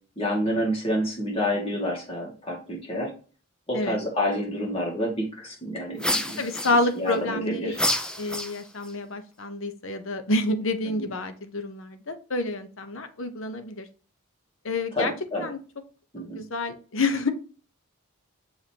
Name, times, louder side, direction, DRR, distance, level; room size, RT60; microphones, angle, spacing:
voice 1, 0.2-3.1 3.7-7.8 11.0-11.1 14.9-15.5 16.1-16.4, equal, 25° left, -2 dB, 2.1 m, -29 dB
sound 1, 6.0-7.1 7.7-8.9, left 1 dB, 5° left, 0.4 m, -28 dB
voice 2, 6.4-7.7 8.2-13.9 14.6-15.1 15.4-15.6 16.2-17.3, left 2 dB, 65° left, 8 dB, 0.9 m, -28 dB
6.9 x 5.2 x 2.9 m, 0.38 s
head